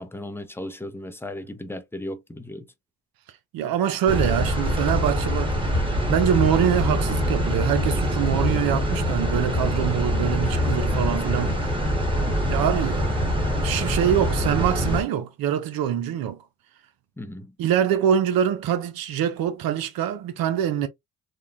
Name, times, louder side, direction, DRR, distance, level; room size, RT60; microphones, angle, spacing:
voice 1, 0.0-2.7 17.2-17.5, left 1 dB, 5° left, 0.6 m, -36 dB
voice 2, 3.5-5.8 6.0-11.8 12.5-13.3 13.6-16.4 17.6-20.9, right 9 dB, 80° right, 0.6 m, -24 dB
sound 1, 4.1-15.0, equal, 15° right, 1.3 m, -24 dB
3.1 x 2.2 x 2.5 m
cardioid pair, 70°, 35 cm